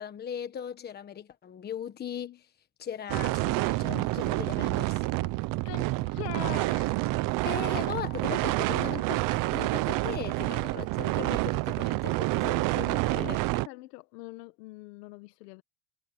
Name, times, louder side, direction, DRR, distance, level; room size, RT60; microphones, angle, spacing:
voice 1, 0.0-2.5 2.8-5.1 7.4-9.2 9.5-13.4, left 8 dB, 20° left, 1.3 m, -38 dB
sound 1, 3.1-13.7, right 20 dB, 45° right, 0.8 m, -28 dB
voice 2, 5.7-7.3 9.0-9.1 12.7-15.6, left 21 dB, 90° left, 1.6 m, -43 dB
cardioid pair, 160°, 46 cm